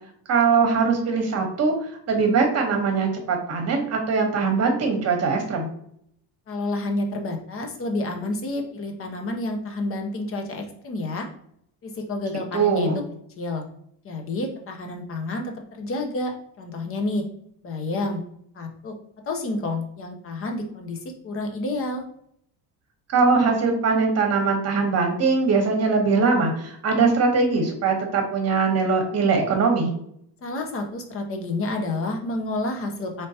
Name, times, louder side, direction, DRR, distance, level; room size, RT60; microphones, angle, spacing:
voice 1, 0.3-1.7 2.1-5.7 12.5-13.0 23.1-29.9, right 4 dB, 35° right, 3 dB, 1.1 m, -21 dB
voice 2, 6.5-11.3 11.8-12.9 13.4-13.6 14.0-17.3 17.6-18.2 18.5-19.0 19.3-22.0 30.4-33.3, left 2 dB, 30° left, 4 dB, 0.7 m, -29 dB
4.4 x 3.3 x 2.8 m, 0.69 s
cardioid pair, 155°, 42 cm